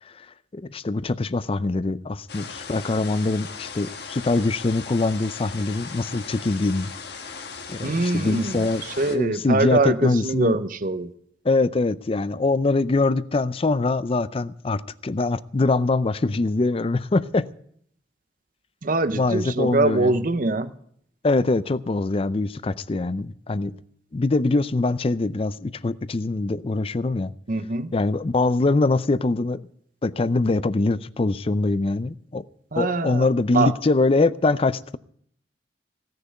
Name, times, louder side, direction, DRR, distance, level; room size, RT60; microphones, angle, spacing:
voice 1, 0.5-6.9 7.7-10.6 11.4-17.5 19.1-20.2 21.2-23.8 24.1-27.3 27.9-29.7 30.0-32.4 32.8-35.0, left 3 dB, 30° left, 0.5 m, -23 dB
sound 1, 2.3-9.2, left 5 dB, 65° left, 1.5 m, -38 dB
voice 2, 7.8-11.1 18.8-20.7 27.5-27.9 32.7-33.3 33.5-33.7, right 2 dB, 50° right, 0.8 m, -23 dB
17.0 x 6.7 x 9.2 m
head